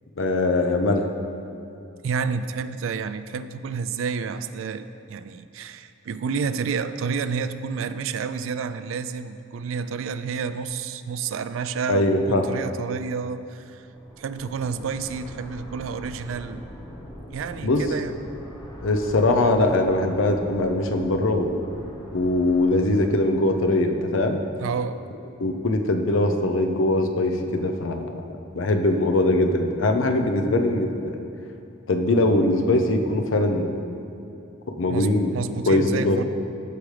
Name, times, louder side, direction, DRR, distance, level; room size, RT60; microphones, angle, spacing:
voice 1, 0.2-1.1 11.9-12.4 17.6-17.8 18.8-21.5 22.1-24.4 25.4-28.1 28.5-31.1 31.9-33.8 34.7-35.3 35.7-36.2, left 2 dB, 80° left, 5 dB, 0.7 m, -21 dB
voice 2, 2.0-13.9 14.2-16.6 17.3-18.2 24.6-25.0 34.9-36.2, right 5 dB, 85° right, 12 dB, 0.4 m, -30 dB
sound 1, 13.8-23.7, equal, 20° left, 0.9 m, -42 dB
14.5 x 5.0 x 3.3 m, 2.8 s
head